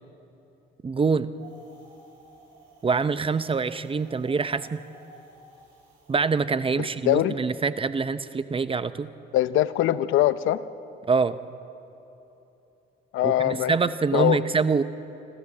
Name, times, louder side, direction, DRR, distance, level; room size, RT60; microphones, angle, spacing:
voice 1, 0.8-1.3 2.8-4.8 6.1-9.1 11.1-11.4 13.2-14.8, right 5 dB, 25° right, 13 dB, 0.7 m, -25 dB
Wind, 1.3-6.4, right 2 dB, 75° right, 5.7 m, -53 dB
voice 2, 6.8-7.3 9.3-10.6 13.1-13.7 14.1-14.4, left 13 dB, 80° left, 15 dB, 0.6 m, -22 dB
26.0 x 14.0 x 7.3 m, 3.0 s
cardioid pair, 90°, 20 cm